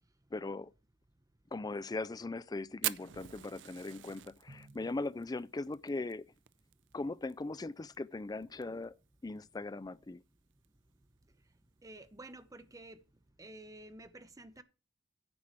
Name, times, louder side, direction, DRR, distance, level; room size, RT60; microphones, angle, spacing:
voice 1, 0.3-0.7 1.5-6.3 6.9-9.0 9.2-10.2, left 2 dB, 20° left, 0.4 m, -39 dB
Fire, 2.8-7.3 7.6-7.7 7.9-8.0 8.4-8.8 9.4-9.5 10.5-10.7, right 14 dB, 90° right, 0.5 m, -41 dB
Drum, 4.5-6.2, right 1 dB, 65° right, 1.9 m, -59 dB
voice 2, 11.8-13.0 13.4-14.6, right 2 dB, 20° right, 0.9 m, -51 dB
9.8 x 4.9 x 7.4 m
head